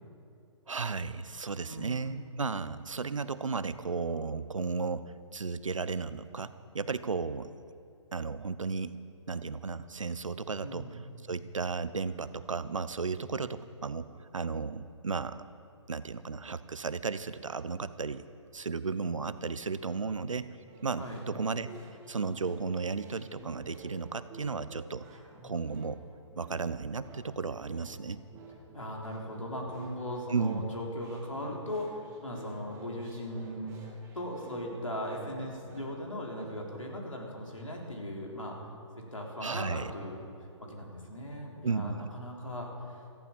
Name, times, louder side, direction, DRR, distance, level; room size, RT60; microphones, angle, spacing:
voice 1, 0.7-7.5 8.1-9.0 9.3-11.0 11.3-15.4 15.9-18.2 18.5-20.6 20.8-21.7 22.1-25.1 25.4-26.0 26.4-28.2 30.3-30.8 39.4-39.9 41.6-42.1, right 4 dB, 80° right, 14 dB, 0.8 m, -34 dB
voice 2, 1.7-2.2 10.6-11.0 21.0-21.2 28.7-33.8 34.1-38.6 39.0-40.2 40.6-43.0, left 1 dB, 90° left, 0 dB, 3.8 m, -38 dB
sound 1, 20.6-36.6, right 3 dB, 15° right, 2.5 m, -51 dB
17.5 x 14.5 x 5.3 m, 2.6 s
figure-of-eight pair, 135°, 16 cm